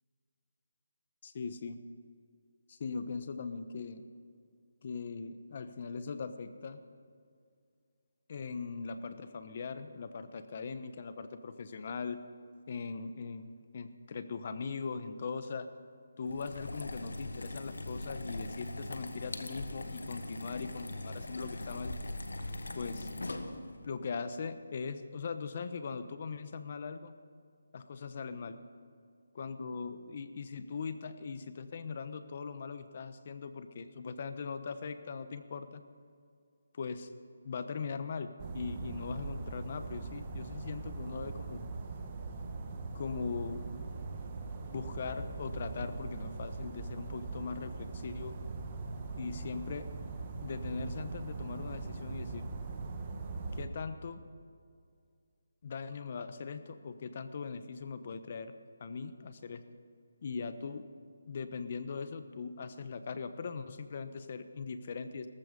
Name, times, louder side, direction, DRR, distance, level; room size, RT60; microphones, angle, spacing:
voice 1, 1.2-1.8 2.7-4.0 4.8-6.8 8.3-12.2 12.7-15.7 16.2-21.9 22.7-23.1 23.8-27.1 27.7-28.6 29.3-35.8 36.7-37.1 37.4-41.6 42.9-43.6 44.6-48.3 49.2-49.9 50.4-52.4 53.5-54.2 55.6-58.5 58.8-59.6 60.2-60.8 61.3-65.3, left 5 dB, 45° left, 11 dB, 1.1 m, -40 dB
sound 1, 16.2-23.9, left 2 dB, 85° left, 1.6 m, -41 dB
sound 2, 38.4-53.7, right 3 dB, 30° right, 1.6 m, -41 dB
18.0 x 14.5 x 5.4 m, 2.2 s
figure-of-eight pair, 160°, 0 cm